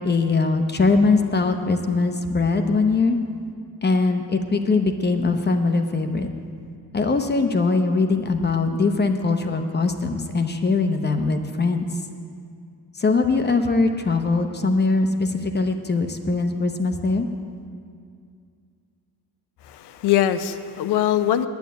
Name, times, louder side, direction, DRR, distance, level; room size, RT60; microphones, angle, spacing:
voice 1, 0.0-3.2 3.8-6.3 6.9-11.8 12.9-17.3, left 3 dB, 25° left, 6 dB, 0.8 m, -21 dB
voice 2, 19.6-21.5, left 11 dB, 85° left, 11 dB, 0.7 m, -22 dB
9.6 x 8.2 x 9.1 m, 2.2 s
cardioid pair, 125°, 40 cm